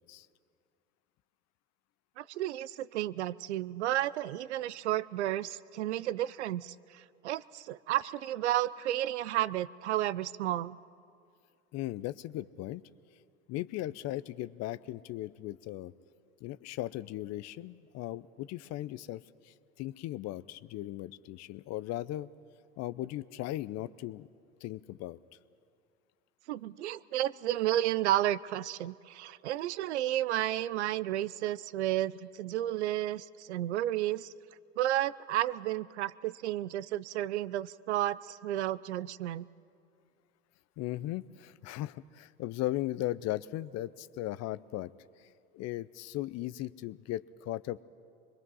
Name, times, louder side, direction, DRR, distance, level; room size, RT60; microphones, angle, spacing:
voice 1, 2.2-10.8 26.5-34.3 34.8-39.5, right 13 dB, 85° right, 19 dB, 0.5 m, -32 dB
voice 2, 11.7-12.8 13.5-15.9 16.4-22.3 22.8-24.3 24.6-25.2 40.8-44.9 45.5-47.8, left 15 dB, 50° left, 17 dB, 0.7 m, -37 dB
24.0 x 22.0 x 5.6 m, 2.4 s
hypercardioid pair, 75°, 33 cm